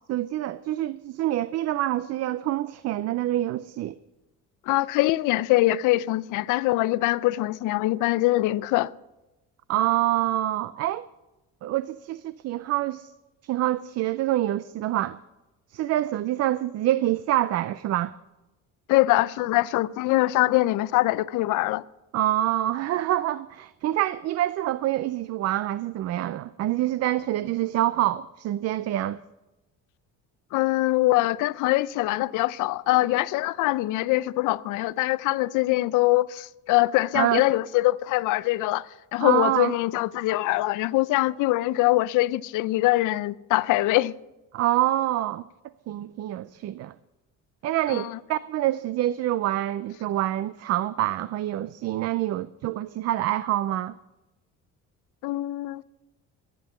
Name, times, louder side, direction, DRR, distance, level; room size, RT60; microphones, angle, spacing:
voice 1, 0.1-4.0 9.7-11.0 11.6-13.1 13.4-15.2 15.7-18.1 22.1-29.2 37.1-37.4 39.2-39.7 44.5-45.4 45.9-46.9 47.6-53.9, right 14 dB, 55° right, 0.5 m, -26 dB
voice 2, 4.7-8.9 18.9-21.8 30.5-38.9 39.1-44.1 47.9-48.2 55.2-55.8, left 18 dB, 75° left, 0.5 m, -23 dB
13.5 x 9.3 x 7.1 m
cardioid pair, 145°, 31 cm